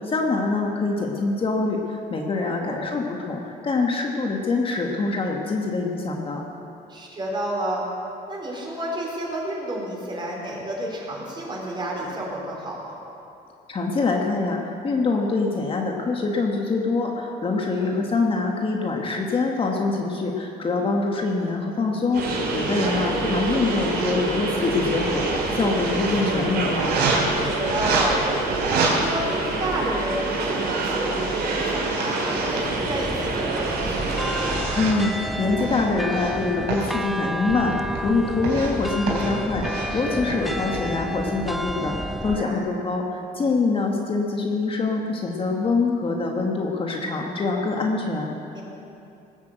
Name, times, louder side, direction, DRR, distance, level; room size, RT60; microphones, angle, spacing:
voice 1, 0.0-6.4 13.7-27.0 34.8-48.3, left 3 dB, 30° left, 1 dB, 1.6 m, -25 dB
voice 2, 2.4-2.9 6.9-7.8 8.3-13.0 17.7-17.9 22.8-23.2 27.4-28.2 28.6-34.2 39.8-40.2 42.2-42.8 48.5-48.6, right 1 dB, 25° right, -2 dB, 4.5 m, -31 dB
sound 1, 22.1-34.6, right 3 dB, 65° right, 3.7 m, -26 dB
sound 2, 22.1-22.9 23.2-24.1 24.5-26.3 26.8-27.2 27.6-28.1 28.5-28.9 29.7-32.7 33.3-35.0 35.6-36.3 36.7-36.9 37.5-38.1 38.4-38.8 39.1-39.3 39.6-39.9 40.3-40.8, right 4 dB, 85° right, 3.9 m, -30 dB
sound 3, 32.7-42.4, equal, ahead, 0.4 m, -31 dB
19.5 x 8.2 x 8.0 m, 2.7 s
cardioid pair, 110°, 17 cm